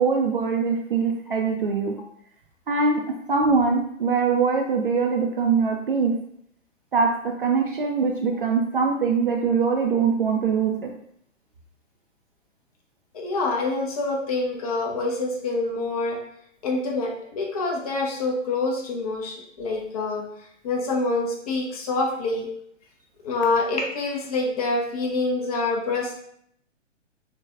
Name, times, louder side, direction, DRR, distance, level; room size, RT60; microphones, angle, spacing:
voice 1, 0.0-1.9 2.7-6.1 6.9-10.9, right 5 dB, 45° right, 1 dB, 0.4 m, -22 dB
voice 2, 13.1-16.2 16.6-20.2 20.6-22.5 23.2-26.2, left 3 dB, 30° left, 0 dB, 0.6 m, -26 dB
4.5 x 2.2 x 2.4 m, 0.70 s
figure-of-eight pair, 125°, 37 cm